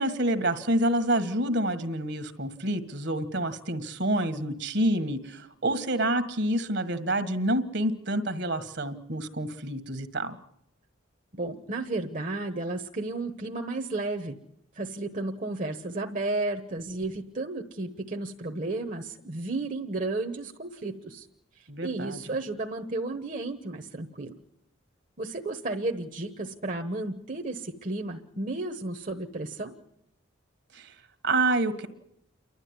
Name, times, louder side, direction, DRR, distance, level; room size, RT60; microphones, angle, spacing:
voice 1, 0.0-10.4 21.7-22.3 30.7-30.9 31.2-31.9, right 1 dB, 55° right, 10 dB, 1.6 m, -28 dB
voice 2, 11.3-14.4 14.7-21.3 21.5-24.4 25.2-29.7, right 2 dB, 40° right, 4 dB, 1.2 m, -33 dB
29.0 x 12.0 x 9.7 m, 0.78 s
head